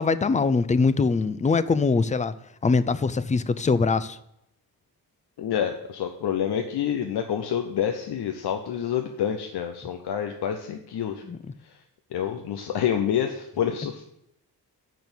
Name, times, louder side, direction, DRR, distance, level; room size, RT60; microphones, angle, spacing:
voice 1, 0.0-2.3 2.6-4.2 11.3-11.4, left 4 dB, 20° left, 15 dB, 0.3 m, -22 dB
voice 2, 5.4-11.2 11.6-11.8 12.1-14.0, left 9 dB, 75° left, 5 dB, 0.8 m, -28 dB
6.7 x 6.1 x 6.9 m, 0.79 s
wide cardioid pair, 110°, 39 cm